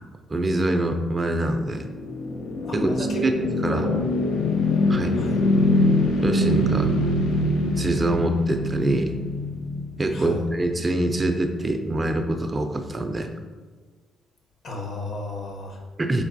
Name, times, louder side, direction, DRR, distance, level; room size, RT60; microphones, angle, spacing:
voice 1, 0.3-1.8 2.7-3.9 4.9-5.2 6.2-6.9 7.7-9.2 10.0-13.3 16.0-16.2, right 1 dB, 25° right, 6 dB, 0.3 m, -25 dB
sound 1, 1.3-10.5, left 1 dB, 90° left, 0.5 m, -24 dB
voice 2, 2.6-3.2 3.7-4.0 5.2-5.4 10.1-10.4 14.6-15.8, left 2 dB, 55° left, 1 dB, 0.8 m, -33 dB
4.3 x 3.3 x 2.6 m, 1.4 s
cardioid pair, 90°, 0 cm